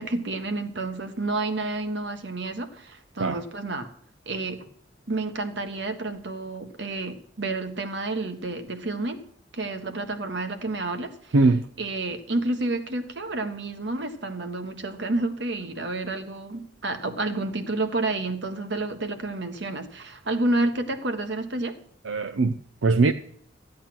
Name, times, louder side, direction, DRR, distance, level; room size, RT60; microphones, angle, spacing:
voice 1, 0.0-3.9 4.3-4.6 5.1-9.2 9.5-11.3 11.8-21.8, right 2 dB, 65° right, 1.4 m, -30 dB
voice 2, 11.3-11.7 22.0-23.1, right 3 dB, 90° right, 0.6 m, -21 dB
13.5 x 8.5 x 6.1 m
head